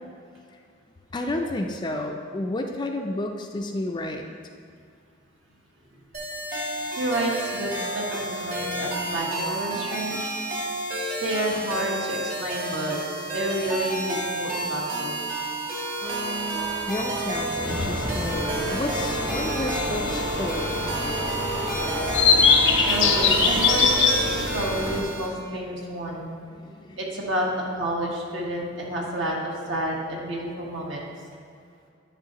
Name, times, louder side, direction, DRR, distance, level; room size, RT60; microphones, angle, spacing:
voice 1, 1.1-4.3 16.9-20.8 26.5-27.0, left 1 dB, 25° left, 3 dB, 0.4 m, -31 dB
sound 1, 6.1-25.3, right 1 dB, 50° right, 1.4 m, -31 dB
voice 2, 7.0-10.3 11.2-13.0 13.2-15.2 22.8-23.9 24.3-26.3 27.0-31.0, right 1 dB, 75° right, -2 dB, 1.4 m, -29 dB
sound 2, 16.0-24.0, right 1 dB, 25° right, 0.8 m, -33 dB
sound 3, 17.6-25.0, left 4 dB, 85° left, 0.8 m, -24 dB
9.7 x 5.5 x 2.9 m, 2.3 s
head